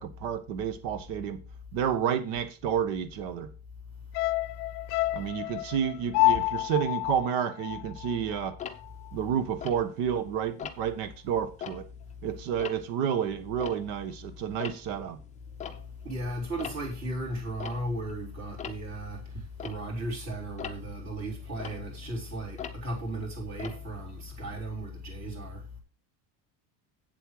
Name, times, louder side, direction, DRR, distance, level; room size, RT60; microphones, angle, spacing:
voice 1, 0.0-1.4 1.7-3.5 5.1-8.6 9.1-11.9 12.2-15.2, right 8 dB, 65° right, 1.5 m, -30 dB
sound 1, 4.1-8.5 8.8-8.9, left 19 dB, 75° left, 0.6 m, -29 dB
Tick-tock, 8.6-10.2 10.6-11.0 11.4-14.2 14.4-24.6, left 8 dB, 15° left, 0.6 m, -44 dB
voice 2, 16.0-25.6, right 1 dB, 35° right, 3.8 m, -35 dB
8.4 x 7.6 x 4.8 m
cardioid pair, 170°, 47 cm